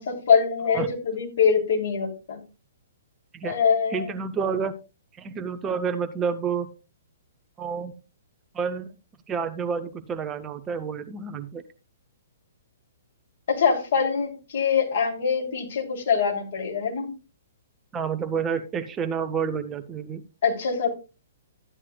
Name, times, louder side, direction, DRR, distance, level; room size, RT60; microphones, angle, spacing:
voice 1, 0.0-2.4 3.4-4.1 13.5-17.1 20.4-20.9, left 6 dB, 50° left, 0 dB, 3.1 m, -24 dB
voice 2, 3.9-4.7 5.2-6.7 7.6-7.9 8.5-8.9 9.3-11.6 17.9-20.2, right 6 dB, 15° right, 8 dB, 0.7 m, -29 dB
13.5 x 9.9 x 2.3 m, 0.31 s
figure-of-eight pair, 120°, 0 cm